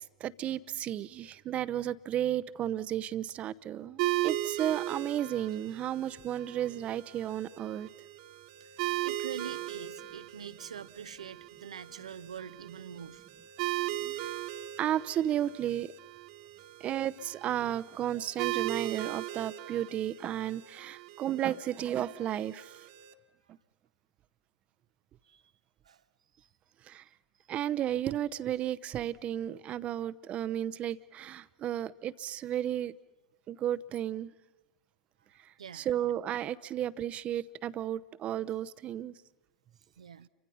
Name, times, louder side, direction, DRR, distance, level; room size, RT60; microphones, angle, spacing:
voice 1, 0.0-7.9 13.8-14.3 14.8-15.9 16.8-22.8 26.8-27.0 27.5-32.9 33.5-34.3 35.7-39.1, right 11 dB, 35° right, 0.8 m, -33 dB
sound 1, 4.0-23.1, right 16 dB, 60° right, 1.6 m, -38 dB
voice 2, 8.6-13.2 25.2-25.4 25.8-26.0 26.4-26.5 35.6-36.1 40.0-40.3, right 7 dB, 80° right, 0.8 m, -45 dB
29.5 x 24.5 x 5.7 m
figure-of-eight pair, 85°, 3 cm